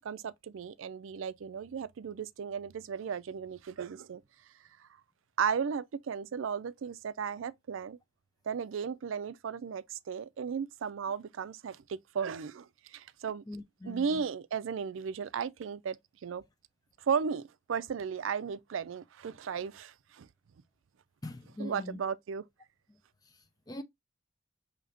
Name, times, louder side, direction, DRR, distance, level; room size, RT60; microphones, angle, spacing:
voice 1, 0.0-4.2 5.4-8.0 8.5-13.4 13.8-16.0 16.2-16.4 17.0-20.3 21.6-22.4, right 6 dB, 80° right, 0.4 m, -35 dB
voice 2, 13.5-14.2 21.2-22.0 23.7-23.8, left 1 dB, 20° left, 0.5 m, -41 dB
4.9 x 2.9 x 2.5 m
head